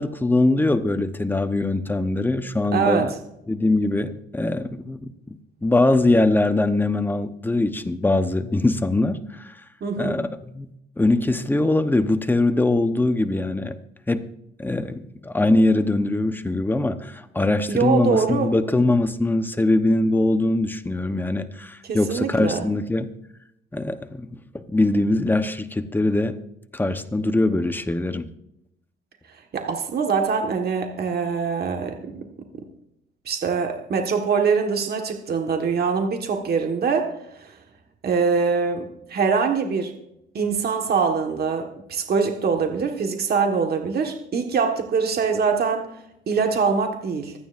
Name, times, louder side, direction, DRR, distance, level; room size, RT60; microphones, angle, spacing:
voice 1, 0.0-3.1 3.5-9.5 10.0-10.7 11.0-13.7 14.1-14.2 14.6-23.1 23.7-24.3 24.5-26.4 26.7-28.3, left 2 dB, 10° left, 9 dB, 0.9 m, -22 dB
voice 2, 2.7-3.2 9.8-10.2 17.7-18.5 21.8-22.7 29.5-32.1 33.2-37.6 38.0-39.9 40.3-45.9 46.3-47.3, right 5 dB, 50° right, 3 dB, 1.5 m, -23 dB
25.5 x 9.3 x 2.6 m, 0.80 s
cardioid pair, 90°, 20 cm